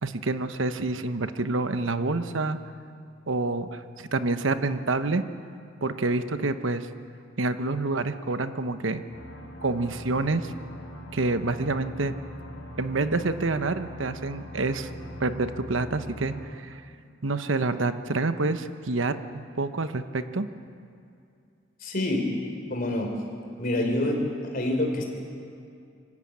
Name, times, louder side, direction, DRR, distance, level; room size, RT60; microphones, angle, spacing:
voice 1, 0.0-2.6 3.3-5.2 5.8-6.9 7.4-9.0 9.6-10.5 11.1-12.1 12.8-14.9 15.2-16.8 17.2-20.5, right 3 dB, 80° right, 10 dB, 1.0 m, -27 dB
sound 1, 9.1-16.5, equal, 90° left, 4.4 m, -41 dB
voice 2, 21.8-22.3 22.7-23.1 23.6-24.2 24.5-25.0, left 1 dB, 45° left, 2 dB, 3.6 m, -26 dB
25.0 x 14.5 x 8.7 m, 2.4 s
head